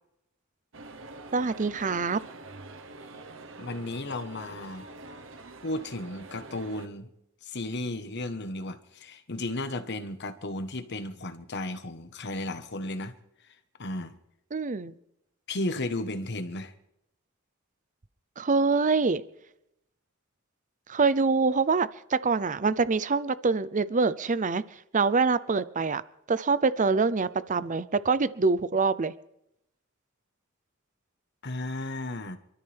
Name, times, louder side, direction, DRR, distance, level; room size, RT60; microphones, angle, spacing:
sound 1, 0.7-6.9, right 2 dB, 70° right, 1.1 m, -45 dB
voice 1, 1.3-2.2 14.5-14.9 18.4-19.2 20.9-24.6 24.9-26.0 26.3-29.1, right 4 dB, 40° right, 0.6 m, -25 dB
voice 2, 3.6-4.9 5.6-7.1 7.4-13.1 13.5-14.2 15.5-16.7 31.4-32.4, left 2 dB, 55° left, 1.3 m, -34 dB
27.0 x 13.0 x 3.5 m
head